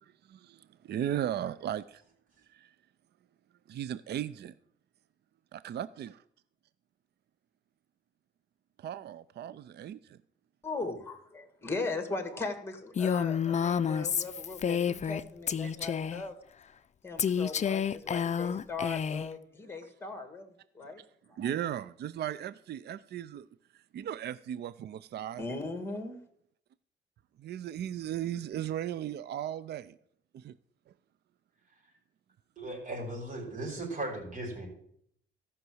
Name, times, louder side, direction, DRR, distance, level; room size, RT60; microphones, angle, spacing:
voice 1, 0.0-2.0 2.5-2.7 3.7-4.5 5.5-6.2 8.8-10.2 15.6-15.7 18.4-18.5 21.0-21.1 21.4-23.5 23.7-25.4 27.4-30.0 30.3-30.6, right 10 dB, 55° right, 0.5 m, -37 dB
voice 2, 10.6-16.4 17.0-21.0 21.3-21.4 25.4-26.2, left 3 dB, 10° left, 2.1 m, -38 dB
Female speech woman speaking, 13.0-15.2 15.5-16.2 17.2-19.3, left 7 dB, 35° left, 0.5 m, -30 dB
voice 3, 32.6-34.7, right 2 dB, 40° right, 4.7 m, -37 dB
14.0 x 5.9 x 7.8 m
cardioid pair, 90°, 20 cm